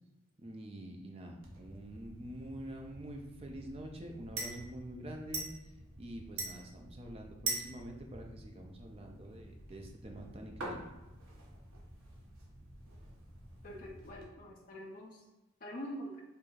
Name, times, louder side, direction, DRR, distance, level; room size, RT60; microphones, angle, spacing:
voice 1, 0.4-5.5 6.0-10.8, right 1 dB, 30° right, 2 dB, 0.4 m, -46 dB
sound 1, 1.4-14.2, right 2 dB, 80° right, 0.9 m, -45 dB
voice 2, 13.6-15.2 15.6-16.2, equal, 40° left, -3 dB, 0.5 m, -45 dB
4.5 x 2.6 x 2.4 m, 1.0 s
head